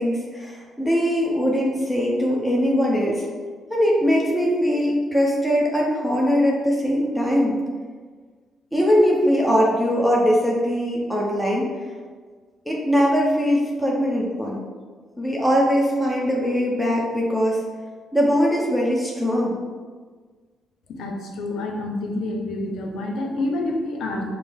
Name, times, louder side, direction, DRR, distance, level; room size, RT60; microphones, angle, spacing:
voice 1, 0.0-3.2 3.7-7.6 8.7-11.8 12.6-14.6 15.2-17.6 18.1-19.6, equal, ahead, -4 dB, 0.8 m, -21 dB
voice 2, 20.9-24.3, left 2 dB, 80° left, 2 dB, 0.6 m, -28 dB
5.9 x 2.1 x 3.5 m, 1.5 s
cardioid pair, 90°, 0 cm